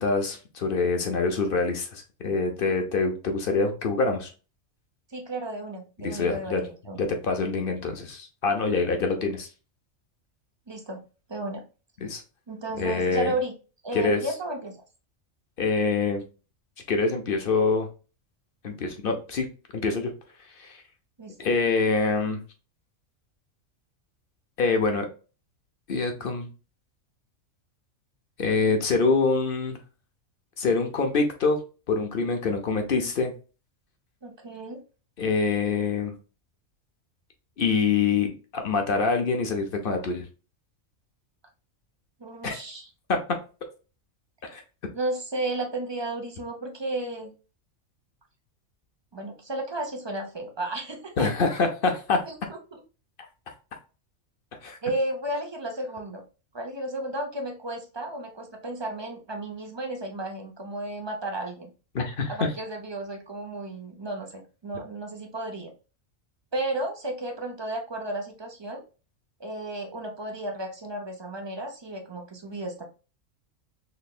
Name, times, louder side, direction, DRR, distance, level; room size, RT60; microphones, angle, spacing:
voice 1, 0.0-4.3 6.0-6.6 7.0-9.5 12.0-12.2 12.8-13.3 13.9-14.2 15.6-16.2 16.9-17.9 18.6-19.5 19.7-20.1 20.6-20.8 21.4-22.4 24.6-25.1 25.9-26.5 28.4-29.8 30.6-31.6 31.9-33.3 35.2-36.1 37.6-40.2 42.4-42.6 43.1-43.2 44.5-44.6 51.2-52.2 54.6-54.8 61.9-62.3, left 4 dB, 50° left, 5 dB, 0.8 m, -25 dB
voice 2, 5.1-7.0 10.7-11.0 11.3-11.6 12.5-13.5 13.8-14.7 21.2-21.3 34.2-34.8 42.2-42.9 44.9-47.3 49.1-51.3 52.3-52.8 54.8-56.2 56.5-61.7 62.3-65.7 66.5-68.8 69.4-72.8, right 1 dB, 25° right, 3 dB, 0.6 m, -33 dB
4.2 x 3.2 x 2.3 m, 0.33 s
omnidirectional pair, 1.4 m